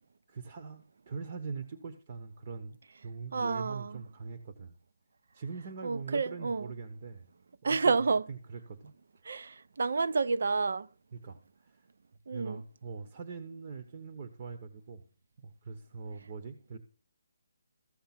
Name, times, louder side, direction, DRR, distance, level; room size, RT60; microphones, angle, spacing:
voice 1, 0.3-2.8 3.0-4.7 5.3-7.3 7.6-7.9 8.3-9.0 11.1-11.9 12.3-15.0 15.4-16.8, right 5 dB, 30° right, 0.9 m, -42 dB
voice 2, 3.3-3.9 5.8-6.7 7.6-8.2 9.3-10.9 12.3-12.6, right 4 dB, 60° right, 0.6 m, -29 dB
14.5 x 6.5 x 5.8 m
hypercardioid pair, 175°, 0 cm